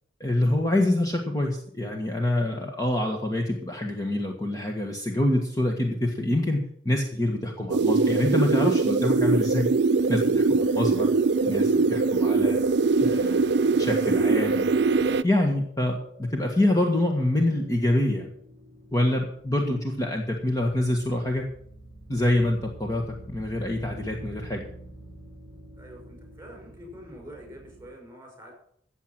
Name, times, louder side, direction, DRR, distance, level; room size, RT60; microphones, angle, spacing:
voice 1, 0.2-9.7 10.1-11.1 11.5-12.6 13.0-14.7 15.2-18.3 18.9-21.4 22.1-24.7, left 1 dB, 20° left, 1 dB, 1.6 m, -26 dB
sound 1, 7.7-15.2, right 3 dB, 70° right, 0.5 m, -22 dB
sound 2, 9.1-27.9, right 1 dB, 55° left, 6.4 m, -49 dB
voice 2, 25.8-28.5, equal, 15° right, 1 dB, 6.0 m, -45 dB
15.5 x 7.6 x 6.0 m, 0.67 s
head